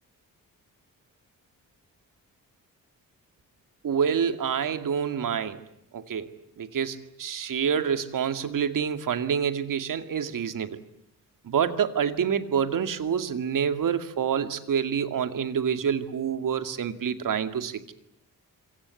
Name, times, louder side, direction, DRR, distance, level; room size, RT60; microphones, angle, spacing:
voice 1, 3.8-5.6 5.9-6.3 6.6-10.8 11.4-17.9, right 7 dB, 65° right, 10 dB, 2.3 m, -27 dB
26.5 x 25.0 x 8.4 m, 0.77 s
wide cardioid pair, 145°, 34 cm